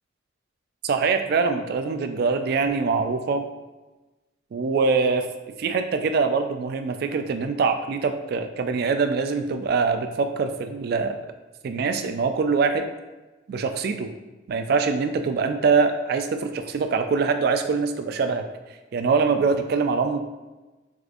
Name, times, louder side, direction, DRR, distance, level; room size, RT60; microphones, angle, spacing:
voice 1, 0.8-3.5 4.5-5.2 5.6-11.2 11.6-12.9 13.5-14.1 14.5-18.4 18.9-20.2, right 4 dB, 55° right, 7 dB, 0.3 m, -23 dB
4.7 x 2.5 x 2.4 m, 1.1 s
head